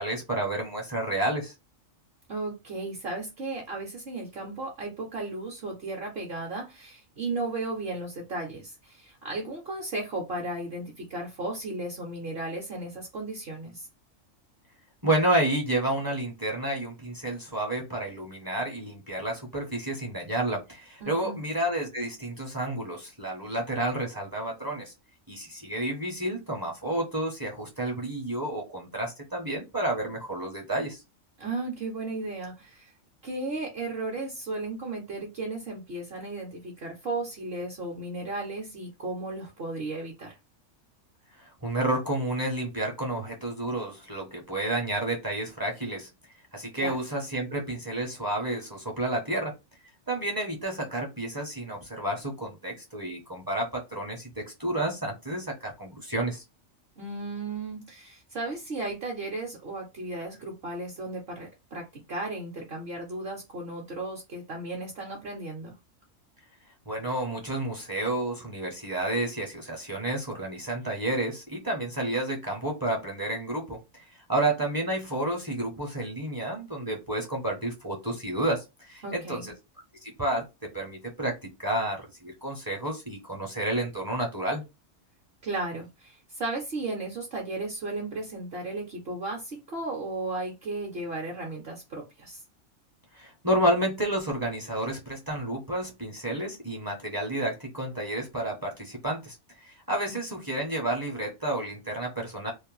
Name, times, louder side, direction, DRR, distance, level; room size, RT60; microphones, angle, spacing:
voice 1, 0.0-1.5 15.0-24.9 25.3-31.0 41.4-46.1 46.5-49.5 50.1-56.4 66.9-74.0 74.3-79.5 80.0-84.6 93.1-102.5, right 1 dB, 25° right, -1 dB, 0.5 m, -30 dB
voice 2, 2.3-13.9 21.0-21.4 31.4-32.9 33.2-40.3 46.7-47.0 57.0-65.7 79.0-79.5 85.4-92.4 100.1-100.2, right 2 dB, 55° right, -1 dB, 0.9 m, -35 dB
2.5 x 2.0 x 3.0 m, 0.24 s
omnidirectional pair, 1.3 m